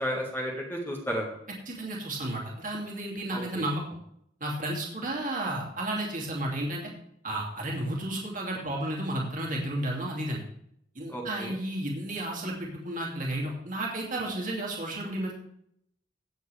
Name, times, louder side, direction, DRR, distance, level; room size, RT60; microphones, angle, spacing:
voice 1, 0.0-1.4 3.3-3.6 11.1-11.6, equal, 10° left, -1 dB, 1.9 m, -33 dB
voice 2, 1.7-3.8 4.4-6.9 7.2-10.4 10.9-15.3, right 1 dB, 45° right, -2 dB, 2.7 m, -32 dB
17.0 x 7.7 x 3.5 m, 0.71 s
head